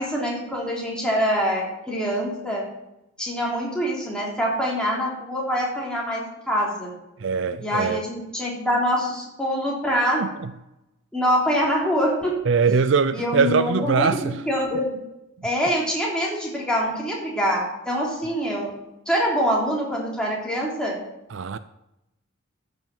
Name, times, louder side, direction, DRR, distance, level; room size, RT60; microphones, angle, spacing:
voice 1, 0.0-2.6 3.2-6.9 7.6-10.2 11.1-12.3 13.1-14.9 15.4-18.7 19.0-21.0, equal, 5° left, 3.1 m, -25 dB
voice 2, 7.2-8.0 10.2-10.3 12.5-14.4 21.3-21.6, right 5 dB, 60° right, 0.4 m, -21 dB
14.0 x 5.7 x 7.3 m
head